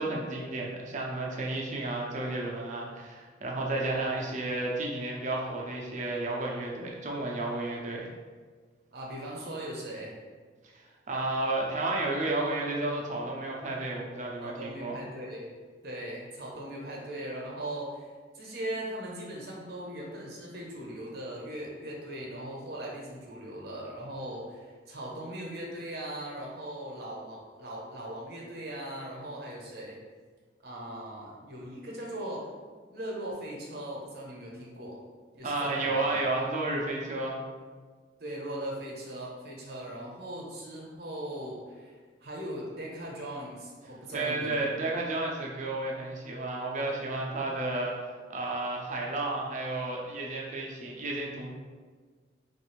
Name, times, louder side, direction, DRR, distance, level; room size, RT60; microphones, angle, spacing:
voice 1, 0.0-8.1 11.1-15.0 35.4-37.4 44.1-48.0 48.3-51.5, right 2 dB, 45° right, -2 dB, 0.5 m, -32 dB
voice 2, 3.8-4.3 8.9-10.2 14.4-15.5 15.8-30.0 30.6-32.5 32.9-35.0 35.3-36.2 38.2-45.0, right 1 dB, 60° right, -3 dB, 0.8 m, -39 dB
3.2 x 2.5 x 3.0 m, 1.5 s
head